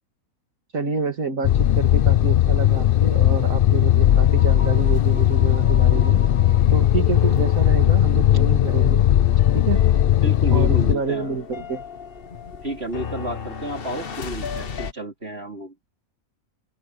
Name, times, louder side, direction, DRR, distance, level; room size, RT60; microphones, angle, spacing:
voice 1, 0.7-6.2 6.7-9.0 9.5-9.8 10.5-11.8, right 5 dB, 60° right, 2.9 m, -28 dB
sound 1, 1.4-11.0, left 12 dB, 85° left, 0.4 m, -17 dB
sound 2, 2.7-14.9, left 6 dB, 40° left, 1.1 m, -35 dB
voice 2, 10.2-11.3 12.6-15.9, right 1 dB, 40° right, 4.0 m, -31 dB
omnidirectional pair, 1.6 m